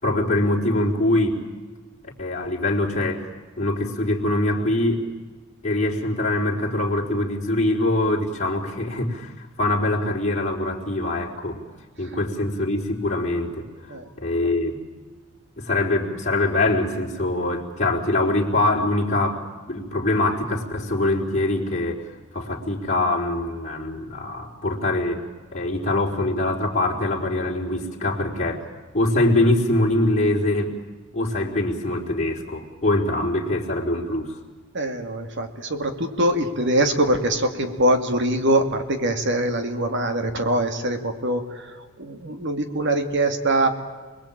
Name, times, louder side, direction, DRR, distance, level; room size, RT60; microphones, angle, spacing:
voice 1, 0.0-1.4 2.2-3.3 3.6-5.1 5.6-11.6 12.0-14.8 15.6-22.0 22.3-25.2 25.5-28.6 28.9-30.7 31.1-34.4, left 2 dB, 35° left, -3 dB, 4.1 m, -23 dB
voice 2, 34.7-43.7, right 1 dB, 60° right, 7 dB, 2.5 m, -23 dB
28.5 x 21.0 x 8.9 m, 1.4 s
head